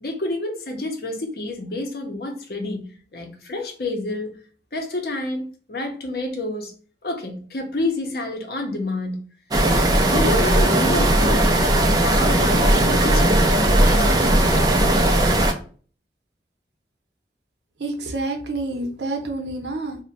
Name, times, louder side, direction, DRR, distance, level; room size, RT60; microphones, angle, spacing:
voice 1, 0.0-4.4 4.7-6.7 7.0-9.2 9.7-11.5 12.0-13.5 13.9-15.0, left 2 dB, 60° left, 0.7 m, -29 dB
sound 1, 9.5-15.5, right 1 dB, 20° right, 0.3 m, -17 dB
voice 2, 17.8-20.0, right 2 dB, 80° right, 0.7 m, -28 dB
2.6 x 2.1 x 3.9 m
head